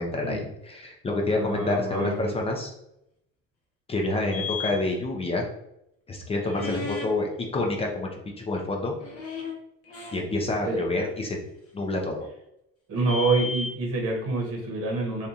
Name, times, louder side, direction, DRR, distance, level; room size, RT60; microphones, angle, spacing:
voice 1, 0.0-2.7 3.9-5.5 6.1-8.9 10.1-11.4 11.7-12.3, left 2 dB, 20° left, 0 dB, 0.4 m, -28 dB
voice 2, 1.3-2.3 6.5-6.9 10.6-10.8 12.9-15.3, right 3 dB, 45° right, 0 dB, 1.0 m, -27 dB
sound 1, 4.3-4.7 6.5-7.1 8.9-9.5 9.8-10.2 11.0-11.1 12.9-13.7, left 4 dB, 50° left, 0.9 m, -34 dB
2.7 x 2.4 x 2.5 m, 0.80 s
supercardioid pair, 110°, 31 cm